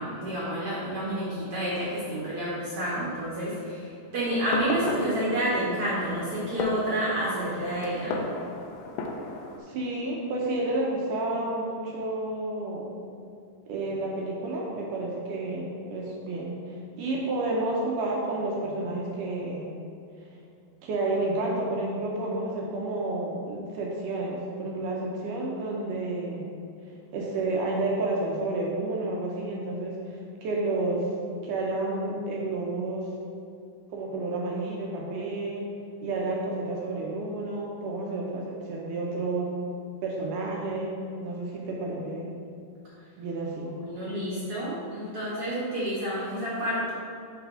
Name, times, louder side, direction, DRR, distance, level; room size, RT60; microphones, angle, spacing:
voice 1, 0.0-3.9 4.1-8.2 43.8-46.9, right 1 dB, 60° right, -8 dB, 1.5 m, -29 dB
Fireworks, 4.3-9.6, left 2 dB, 85° left, 2.4 m, -35 dB
voice 2, 9.6-12.9 13.7-19.8 20.8-26.6 27.1-31.1 31.4-33.1 33.9-35.7 36.0-39.6 40.0-42.3 43.2-43.8, right 2 dB, 75° right, -2 dB, 2.0 m, -30 dB
10.5 x 4.1 x 3.7 m, 2.5 s
omnidirectional pair, 4.3 m